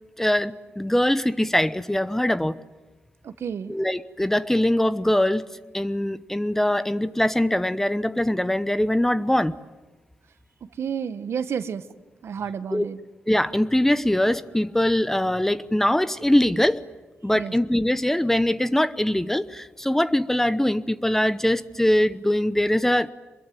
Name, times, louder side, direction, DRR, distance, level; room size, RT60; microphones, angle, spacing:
voice 1, 0.2-2.6 3.7-5.4 5.7-9.6 12.7-12.9 13.3-16.8 17.2-23.1, left 1 dB, 10° left, 14 dB, 0.9 m, -22 dB
voice 2, 3.2-3.8 10.6-11.8 12.2-13.0 17.3-17.5, right 7 dB, 75° right, 12 dB, 1.3 m, -30 dB
27.0 x 22.0 x 9.3 m, 1.2 s
cardioid pair, 90°, 4 cm